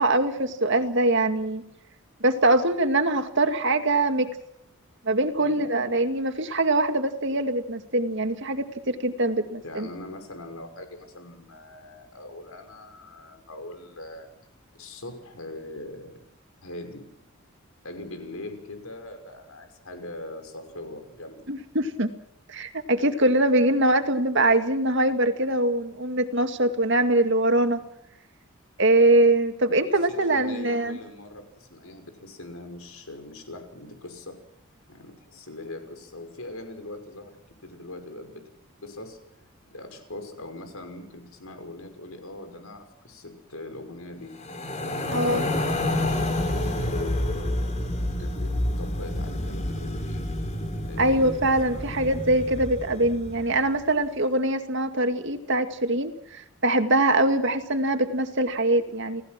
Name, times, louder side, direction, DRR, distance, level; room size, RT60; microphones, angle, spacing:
voice 1, 0.0-1.6 2.2-4.3 5.1-9.9 21.5-22.1 22.5-27.8 28.8-31.0 45.1-45.4 51.0-59.2, right 2 dB, 55° right, 7 dB, 2.2 m, -23 dB
voice 2, 5.4-5.7 9.6-14.3 14.7-16.2 16.6-17.2 17.8-21.5 29.9-34.4 34.9-38.4 38.8-39.2 39.7-44.3 44.8-47.5 48.2-50.4 50.8-51.9, left 2 dB, 80° left, 7 dB, 5.9 m, -41 dB
sound 1, 44.3-53.7, left 1 dB, 30° left, 4.2 m, -29 dB
30.0 x 18.5 x 6.1 m, 0.80 s
head